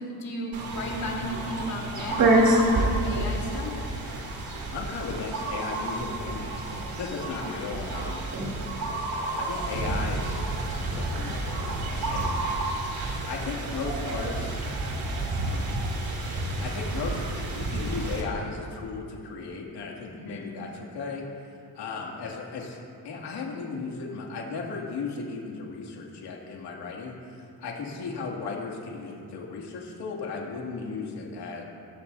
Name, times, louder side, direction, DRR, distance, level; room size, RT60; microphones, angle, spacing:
voice 1, 0.0-3.7 7.4-7.5 20.1-20.6, left 1 dB, 60° left, -2 dB, 3.9 m, -35 dB
sound 1, 0.5-18.2, right 2 dB, 65° right, 3.4 m, -29 dB
voice 2, 4.7-6.7 7.0-8.5 9.4-12.6 13.0-14.7 15.4-15.7 16.3-21.2 21.7-31.6, left 4 dB, 90° left, -1 dB, 2.8 m, -36 dB
22.5 x 16.5 x 2.8 m, 2.5 s
cardioid pair, 90°, 39 cm